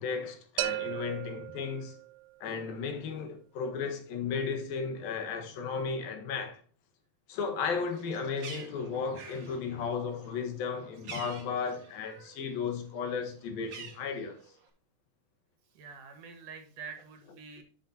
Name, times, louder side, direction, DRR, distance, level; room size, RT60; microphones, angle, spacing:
voice 1, 0.0-1.9 2.4-6.6 7.3-14.4, left 5 dB, 75° left, 3.1 m, -34 dB
sound 1, 0.6-2.4, right 16 dB, 80° right, 2.2 m, -36 dB
Bird, 7.8-12.4 12.8-14.7, right 5 dB, 45° right, 1.7 m, -48 dB
voice 2, 15.7-17.6, right 5 dB, 65° right, 2.8 m, -46 dB
12.0 x 6.5 x 2.8 m
omnidirectional pair, 4.2 m